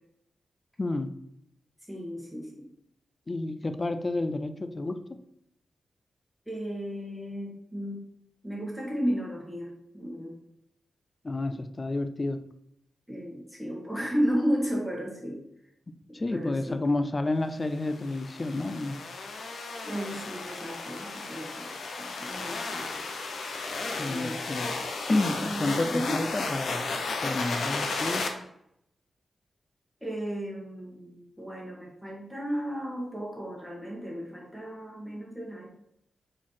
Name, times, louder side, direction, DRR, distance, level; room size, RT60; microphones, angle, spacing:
voice 1, 0.8-1.1 3.3-5.0 11.2-12.4 16.1-19.0 24.0-24.7 25.1-26.9 27.2-28.3, left 2 dB, 25° left, 10 dB, 0.5 m, -30 dB
voice 2, 1.9-2.7 6.5-8.0 8.4-10.4 13.1-15.4 16.3-16.8 19.8-21.7 22.0-22.8 23.9-24.4 25.4-26.2 30.0-35.7, equal, ahead, -3 dB, 1.6 m, -34 dB
sound 1, 17.8-28.3, left 3 dB, 70° left, 0.9 m, -34 dB
4.8 x 4.4 x 5.6 m, 0.77 s
wide cardioid pair, 135°, 0 cm